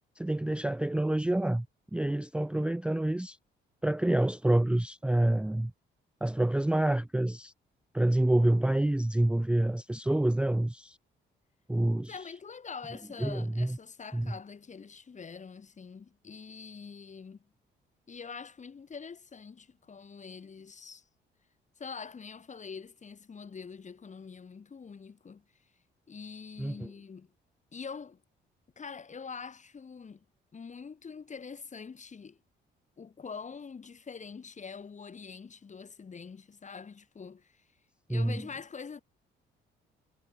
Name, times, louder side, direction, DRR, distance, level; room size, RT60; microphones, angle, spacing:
voice 1, 0.2-1.7 1.9-3.4 3.8-5.7 6.2-7.5 7.9-11.0 11.7-12.1 13.2-13.8 14.1-14.3 26.6-26.9 38.1-38.4, right 1 dB, 5° right, 0.5 m, -27 dB
voice 2, 12.1-17.5 18.1-21.1 21.8-25.5 26.1-27.3 27.7-28.2 28.8-30.3 30.5-32.4 33.0-37.7 38.1-39.0, left 5 dB, 35° left, 3.4 m, -44 dB
cardioid pair, 90°, 20 cm